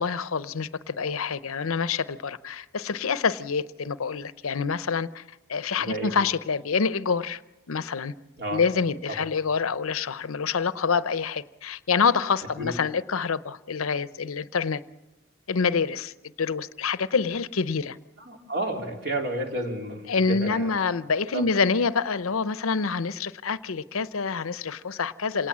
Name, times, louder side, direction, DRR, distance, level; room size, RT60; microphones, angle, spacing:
voice 1, 0.0-5.2 5.5-7.4 7.7-8.1 8.5-14.8 15.5-18.0 20.1-25.5, left 5 dB, 80° left, 15 dB, 0.7 m, -27 dB
voice 2, 5.8-6.1 8.4-8.6 9.1-9.3 12.6-12.7 18.2-20.8 21.3-21.5, right 1 dB, 50° right, 2 dB, 3.7 m, -31 dB
27.0 x 19.0 x 7.4 m, 1.0 s
head